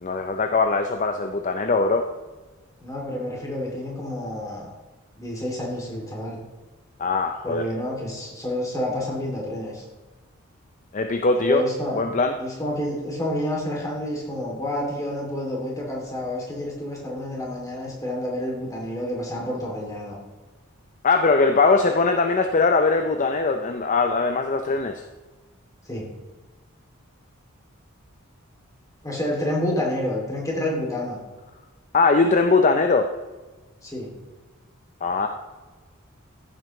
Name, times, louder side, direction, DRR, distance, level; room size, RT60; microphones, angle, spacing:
voice 1, 0.0-2.1 7.0-7.7 10.9-11.6 11.9-12.3 21.0-25.0 31.9-33.1 35.0-35.3, left 3 dB, 35° left, 6 dB, 0.5 m, -21 dB
voice 2, 2.8-4.7 5.2-6.4 7.4-9.8 11.4-12.0 12.4-20.2 25.9-26.1 29.0-31.2 33.8-34.1, left 1 dB, 15° left, -3 dB, 2.5 m, -29 dB
14.5 x 7.6 x 3.1 m, 1.2 s
head